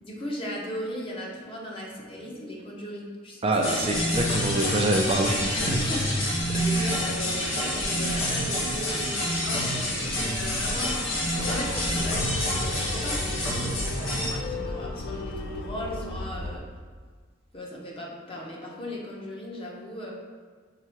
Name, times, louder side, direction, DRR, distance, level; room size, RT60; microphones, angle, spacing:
voice 1, 0.0-3.8 5.9-6.1 6.6-16.6 17.5-20.1, left 1 dB, 30° left, -3 dB, 1.0 m, -37 dB
voice 2, 3.4-5.6 6.5-6.9, right 2 dB, 30° right, 0 dB, 0.5 m, -26 dB
sound 1, 3.6-14.3, left 1 dB, 80° left, 1.4 m, -27 dB
sound 2, 11.4-16.6, left 2 dB, 55° left, 0.5 m, -35 dB
5.9 x 3.7 x 4.5 m, 1.5 s
head